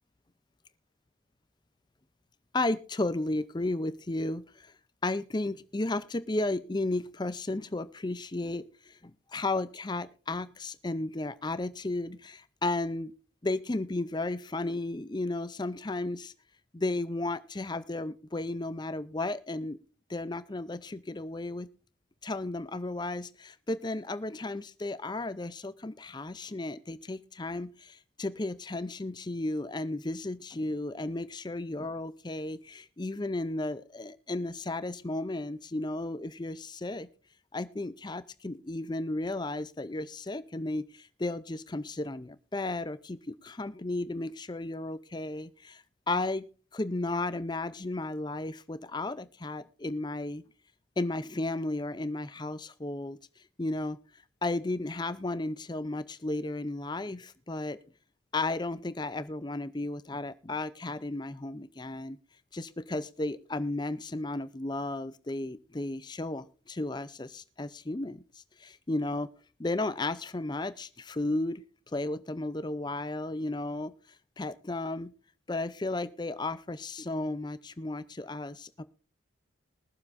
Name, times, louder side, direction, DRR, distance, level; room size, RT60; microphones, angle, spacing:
voice 1, 2.5-4.7 5.0-13.1 13.4-16.3 16.7-19.8 20.1-21.7 22.2-37.1 37.5-46.5 46.7-50.4 51.0-53.2 53.6-54.0 54.4-57.8 58.3-62.2 62.5-69.3 69.6-71.6 71.9-73.9 74.4-75.1 75.5-78.8, left 2 dB, 20° left, 14 dB, 0.5 m, -34 dB
22.0 x 7.3 x 2.6 m, 0.43 s
head